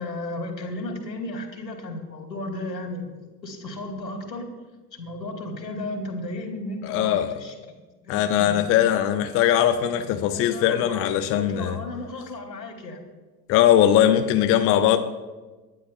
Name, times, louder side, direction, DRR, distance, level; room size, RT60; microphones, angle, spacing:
voice 1, 0.0-3.0 3.4-4.5 4.9-7.8 8.1-8.6 9.6-13.0, left 2 dB, 75° left, 2.5 m, -34 dB
voice 2, 6.8-7.4 8.1-11.8 13.5-15.0, left 11 dB, 25° left, 0.7 m, -20 dB
26.0 x 11.5 x 2.2 m
figure-of-eight pair, 80°, 50 cm